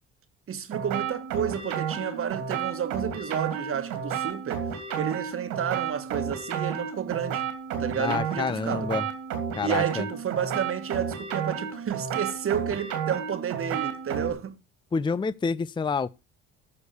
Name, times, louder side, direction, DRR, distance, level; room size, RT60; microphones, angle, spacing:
voice 1, 0.5-7.5 7.8-8.9 9.6-14.6, right 8 dB, 45° right, 1.6 m, -31 dB
sound 1, 0.7-14.3, right 7 dB, 80° right, 3.0 m, -32 dB
voice 2, 8.0-9.0 9.5-10.0 14.9-16.1, left 5 dB, 15° left, 0.5 m, -28 dB
13.5 x 4.7 x 6.8 m
hypercardioid pair, 65°, 30 cm